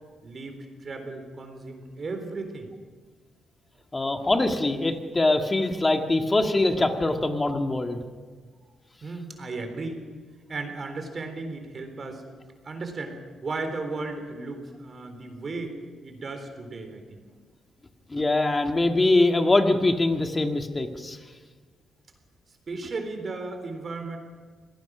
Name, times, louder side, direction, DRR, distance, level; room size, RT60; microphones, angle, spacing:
voice 1, 0.2-2.7 4.1-4.2 9.0-10.0 10.5-12.3 12.6-17.4 22.7-24.2, right 3 dB, 40° right, 6 dB, 3.7 m, -35 dB
voice 2, 3.9-8.0 18.1-21.2, left 2 dB, 20° left, 5 dB, 1.9 m, -23 dB
25.5 x 18.0 x 6.1 m, 1.5 s
cardioid pair, 115°, 0 cm